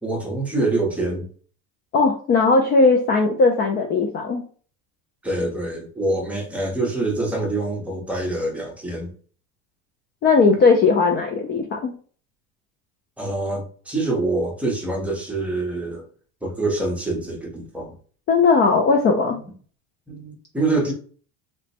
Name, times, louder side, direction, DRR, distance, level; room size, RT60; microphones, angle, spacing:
voice 1, 0.0-1.2 5.2-9.1 13.2-16.1 16.4-17.9 19.3-19.4 20.1-20.9, right 2 dB, 5° right, -2 dB, 0.7 m, -25 dB
voice 2, 1.9-4.4 10.2-11.9 18.3-19.4, left 4 dB, 30° left, 3 dB, 0.4 m, -18 dB
3.1 x 2.1 x 4.1 m, 0.43 s
cardioid pair, 155°, 36 cm